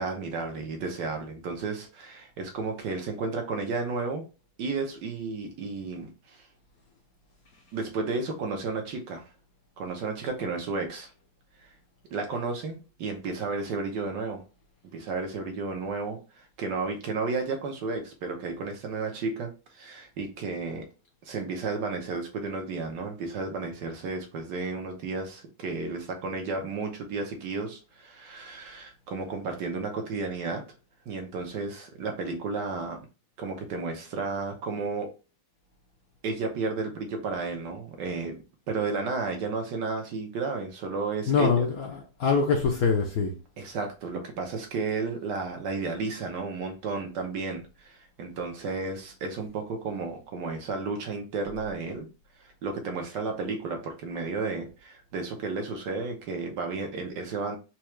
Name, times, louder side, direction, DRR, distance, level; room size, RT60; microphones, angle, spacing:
voice 1, 0.0-4.3 4.6-6.5 7.7-9.3 9.8-11.1 12.1-14.4 14.9-20.8 21.2-30.6 31.1-33.1 33.4-35.1 36.2-41.7 43.6-52.1 52.6-57.6, right 4 dB, 70° right, 1.4 m, -33 dB
voice 2, 41.3-43.3, left 5 dB, 65° left, 0.9 m, -24 dB
4.5 x 2.4 x 3.0 m
omnidirectional pair, 2.1 m